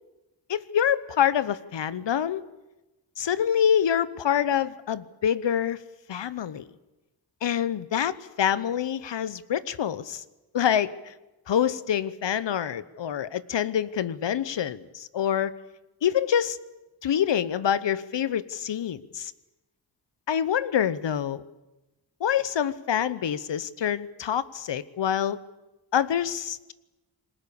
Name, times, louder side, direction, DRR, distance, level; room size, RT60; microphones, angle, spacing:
voice 1, 0.5-2.4 3.2-5.8 6.1-6.7 7.4-10.2 10.5-11.1 11.5-15.6 16.0-16.6 17.0-19.3 20.3-21.4 22.2-25.4 25.9-26.7, left 9 dB, 75° left, 16 dB, 1.0 m, -26 dB
28.5 x 21.0 x 7.0 m, 1.0 s
wide cardioid pair, 95°, 44 cm